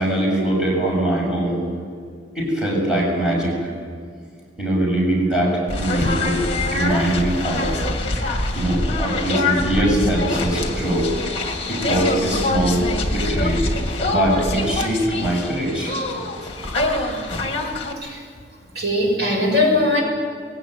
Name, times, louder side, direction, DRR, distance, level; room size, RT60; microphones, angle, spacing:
voice 1, 0.0-1.6 2.3-3.7 4.6-6.4 6.7-7.7 8.5-11.1 11.7-13.6 14.0-15.9 16.6-16.8, right 1 dB, 5° right, -5 dB, 7.3 m, -22 dB
sound 1, 5.7-17.9, left 2 dB, 30° left, 2.5 m, -24 dB
voice 2, 18.7-20.0, left 2 dB, 60° right, -1 dB, 6.9 m, -19 dB
21.5 x 17.5 x 9.3 m, 2.1 s
head